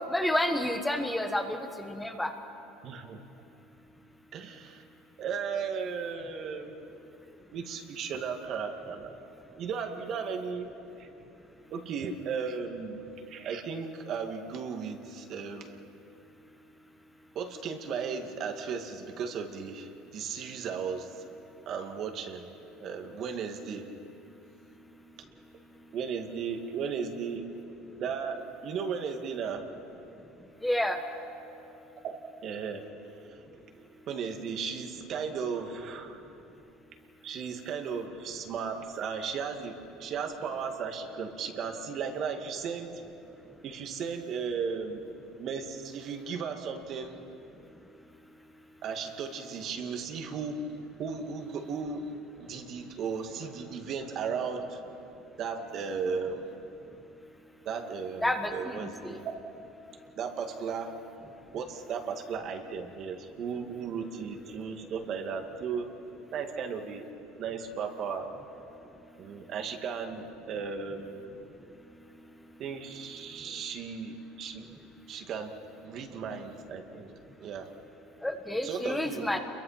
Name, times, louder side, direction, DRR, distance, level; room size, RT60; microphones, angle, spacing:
voice 1, 0.0-2.3 30.6-31.0 58.2-59.2 78.2-79.4, left 1 dB, 5° left, 5 dB, 1.5 m, -30 dB
voice 2, 2.8-3.2 4.3-4.8 5.2-6.8 7.5-9.2 9.6-11.1 11.7-13.0 13.3-15.7 17.3-21.3 21.7-22.5 22.8-23.9 25.9-27.5 28.0-29.7 32.0-32.9 33.3-33.4 33.7-36.2 37.2-43.0 43.6-45.0 45.4-47.2 48.8-50.6 51.0-52.1 52.4-54.8 55.4-56.6 57.7-59.5 60.2-61.0 61.5-65.9 66.3-67.0 67.4-68.3 69.2-71.2 72.6-74.7 75.1-75.6 75.8-77.1 77.4-77.7 78.6-79.4, right 6 dB, 50° right, 4 dB, 2.2 m, -35 dB
28.5 x 22.5 x 5.9 m, 2.8 s
supercardioid pair, 115°, 0 cm